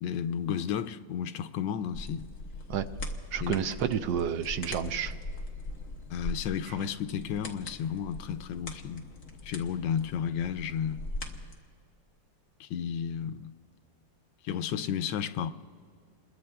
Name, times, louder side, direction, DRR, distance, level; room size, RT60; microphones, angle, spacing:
voice 1, 0.0-2.3 3.4-3.7 6.1-9.0 9.4-11.0 12.6-13.5 14.4-15.5, left 8 dB, 90° left, 1.3 m, -32 dB
sound 1, 1.9-11.5, left 2 dB, 45° left, 1.7 m, -41 dB
voice 2, 3.3-5.1 6.7-6.8, right 8 dB, 75° right, 1.3 m, -30 dB
28.5 x 22.0 x 2.3 m
omnidirectional pair, 2.0 m